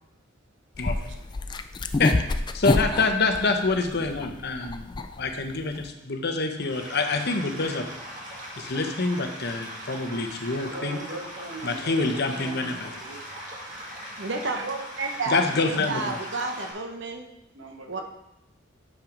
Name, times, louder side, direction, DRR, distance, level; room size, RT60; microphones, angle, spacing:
voice 1, 0.8-1.1 2.0-2.2 2.5-7.9 8.6-11.0 11.6-12.9 15.3-16.2, left 3 dB, 55° left, 5 dB, 0.9 m, -26 dB
sound 1, 0.8-5.9, left 2 dB, 25° left, 0.3 m, -27 dB
sound 2, 6.6-16.7, equal, 40° right, 2.0 m, -40 dB
voice 2, 10.5-13.2 17.5-18.0, right 3 dB, 90° right, 1 dB, 1.5 m, -40 dB
voice 3, 13.9-17.3 17.9-18.0, right 3 dB, 65° right, 4 dB, 1.0 m, -31 dB
6.5 x 5.8 x 5.2 m, 0.86 s
head